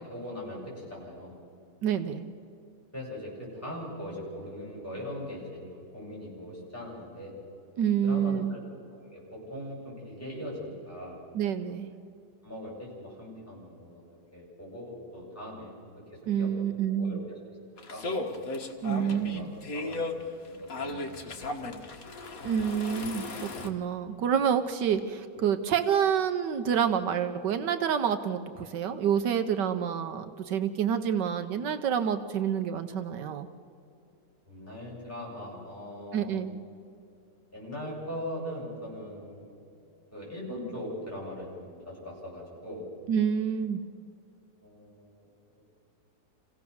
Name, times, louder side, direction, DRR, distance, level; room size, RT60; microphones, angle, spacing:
voice 1, 0.0-1.4 2.9-7.3 8.0-8.6 8.9-11.2 12.4-15.7 16.1-16.5 16.9-17.4 17.9-18.1 18.8-21.7 34.5-36.3 37.5-39.5 40.1-42.9 44.6-45.3 45.5-45.6, equal, 10° left, -6 dB, 7.7 m, -40 dB
voice 2, 1.8-2.2 7.8-8.6 11.3-11.9 16.3-17.2 18.8-19.5 22.4-33.5 36.1-36.6 43.1-43.8, right 8 dB, 75° right, 8 dB, 1.4 m, -28 dB
sound 1, 17.8-23.7, left 2 dB, 50° left, 2.0 m, -36 dB
27.5 x 16.5 x 7.0 m, 2.6 s
omnidirectional pair, 1.9 m